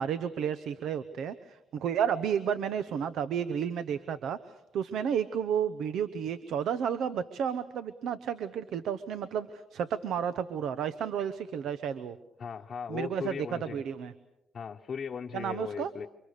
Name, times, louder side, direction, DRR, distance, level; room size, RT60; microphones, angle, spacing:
voice 1, 0.0-12.2 12.9-14.1 15.3-15.9, right 8 dB, 75° right, 13 dB, 1.0 m, -32 dB
voice 2, 12.4-13.8 14.5-16.1, left 6 dB, 45° left, 0 dB, 1.0 m, -37 dB
28.5 x 25.0 x 6.7 m, 0.89 s
cardioid pair, 90°, 0 cm